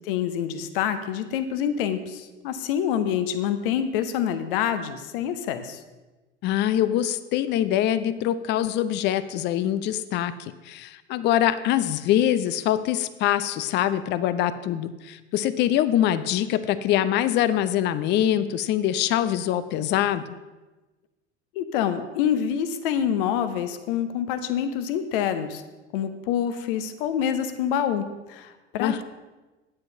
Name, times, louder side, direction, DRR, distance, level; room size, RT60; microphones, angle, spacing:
voice 1, 0.1-5.8 21.5-25.6 25.9-29.0, left 9 dB, 55° left, 10 dB, 1.0 m, -26 dB
voice 2, 6.4-20.2 28.8-29.0, left 11 dB, 30° left, 14 dB, 0.6 m, -24 dB
9.5 x 7.6 x 5.6 m, 1.1 s
figure-of-eight pair, 75°, 34 cm